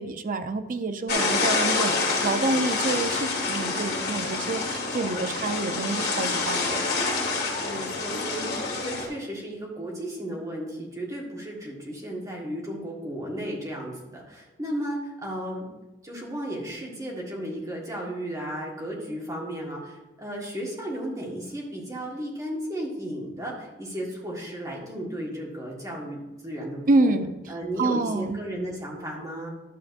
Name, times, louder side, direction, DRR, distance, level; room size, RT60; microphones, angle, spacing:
voice 1, 0.0-1.9 2.2-6.8 26.9-28.4, right 2 dB, 45° right, 8 dB, 0.5 m, -27 dB
sound 1, 1.1-9.1, left 3 dB, 55° left, 2.1 m, -27 dB
voice 2, 1.1-1.4 7.6-15.7 16.0-26.2 26.4-27.2 27.5-29.5, right 1 dB, 15° right, -3 dB, 1.6 m, -34 dB
12.0 x 7.2 x 2.6 m, 1.1 s
head